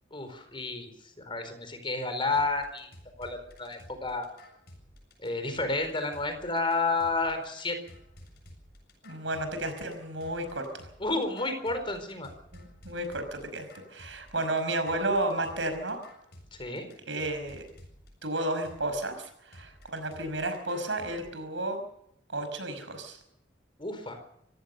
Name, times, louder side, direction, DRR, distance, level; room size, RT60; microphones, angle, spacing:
voice 1, 0.1-0.9 1.2-2.9 3.2-4.3 5.2-7.8 11.0-12.3 16.6-16.9 23.8-24.2, left 3 dB, 30° left, 8 dB, 4.3 m, -31 dB
sound 1, 2.3-21.2, left 1 dB, 60° left, 7.4 m, -53 dB
voice 2, 9.0-10.9 12.5-16.0 17.1-17.6 18.2-21.8 22.3-23.2, right 1 dB, 80° right, 8 dB, 5.4 m, -32 dB
25.5 x 16.0 x 6.8 m, 0.74 s
head